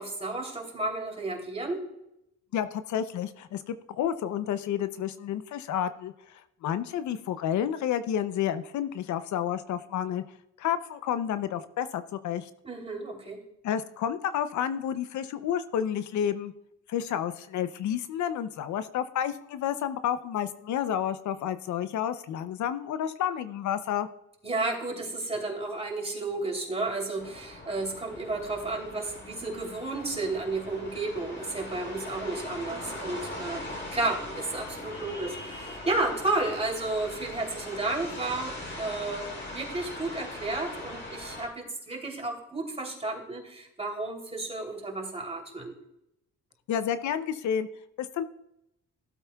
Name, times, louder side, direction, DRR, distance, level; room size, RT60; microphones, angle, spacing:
voice 1, 0.0-1.8 12.6-13.4 24.4-45.7, right 2 dB, 20° right, 1 dB, 3.0 m, -32 dB
voice 2, 2.5-6.1 6.6-10.2 10.6-12.5 13.6-16.5 16.9-24.1 46.7-47.7 48.0-48.2, left 9 dB, 70° left, 12 dB, 0.6 m, -30 dB
sound 1, 27.2-41.5, left 1 dB, 35° left, 3.4 m, -41 dB
15.5 x 8.2 x 2.3 m, 0.82 s
cardioid pair, 90°, 30 cm